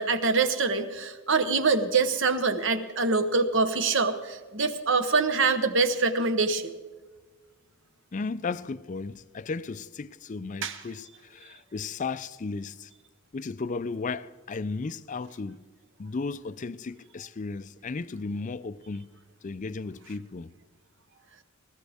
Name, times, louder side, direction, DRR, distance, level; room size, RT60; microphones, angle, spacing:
voice 1, 0.0-6.7 10.6-10.8, right 4 dB, 55° right, 1.1 m, -25 dB
voice 2, 8.1-12.9 13.3-15.6 16.0-19.1 19.4-20.5, left 4 dB, 35° left, 0.4 m, -35 dB
19.5 x 14.0 x 3.5 m
head